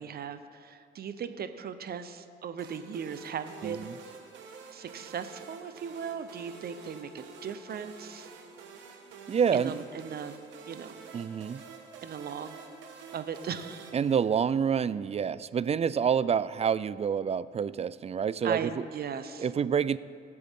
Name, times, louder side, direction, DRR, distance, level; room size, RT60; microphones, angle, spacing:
voice 1, 0.0-3.9 4.7-8.3 9.5-10.4 10.7-11.0 12.0-12.6 13.1-13.9 18.4-19.5, right 7 dB, 55° right, 10 dB, 0.9 m, -38 dB
sound 1, 2.6-14.8, right 5 dB, 85° right, 1.4 m, -49 dB
voice 2, 3.6-3.9 9.3-9.7 11.1-11.6 13.9-18.7 19.4-20.0, right 7 dB, 35° right, 17 dB, 0.4 m, -27 dB
22.5 x 7.8 x 3.7 m, 2.3 s
supercardioid pair, 70°, 19 cm